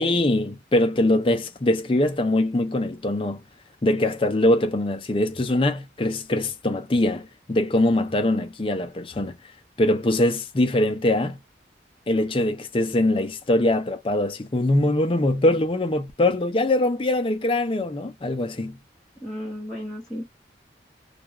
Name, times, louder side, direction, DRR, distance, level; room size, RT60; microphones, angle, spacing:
voice 1, 0.0-3.4 3.8-9.3 9.8-11.4 12.1-18.8, left 1 dB, 30° left, 0.5 m, -22 dB
voice 2, 19.2-20.3, equal, 5° left, 0.8 m, -34 dB
2.4 x 2.2 x 2.9 m
head